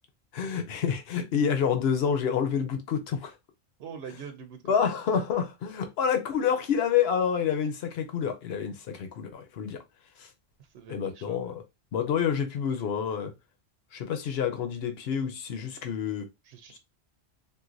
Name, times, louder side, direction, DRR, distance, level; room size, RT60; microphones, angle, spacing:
voice 1, 0.3-3.3 4.6-9.8 10.2-10.3 10.9-11.6 11.9-13.3 13.9-16.3, left 7 dB, 70° left, 1.0 m, -28 dB
voice 2, 3.8-4.7 10.7-11.5 16.5-16.8, right 7 dB, 75° right, 0.8 m, -44 dB
3.9 x 2.5 x 2.5 m
omnidirectional pair, 1.1 m